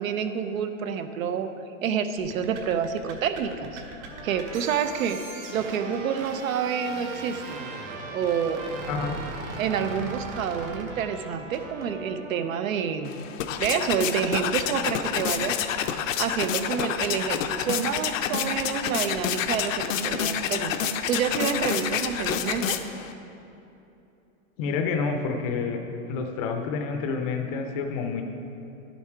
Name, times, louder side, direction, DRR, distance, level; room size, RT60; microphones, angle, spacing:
voice 1, 0.0-1.5 1.8-3.8 4.2-5.2 5.5-7.6 8.1-8.6 9.6-13.1 13.6-19.7 20.0-22.8, right 7 dB, 75° right, 9 dB, 0.8 m, -28 dB
sound 1, 2.2-11.9, right 3 dB, 55° right, 1.6 m, -40 dB
Trumpet, 4.0-12.6, right 3 dB, 20° right, 0.4 m, -42 dB
sound 2, 13.1-23.1, left 8 dB, 70° left, 0.7 m, -28 dB
voice 2, 24.6-25.8 26.1-28.2, left 5 dB, 25° left, 4 dB, 0.6 m, -28 dB
11.0 x 7.2 x 4.5 m, 2.9 s
supercardioid pair, 165°, 41 cm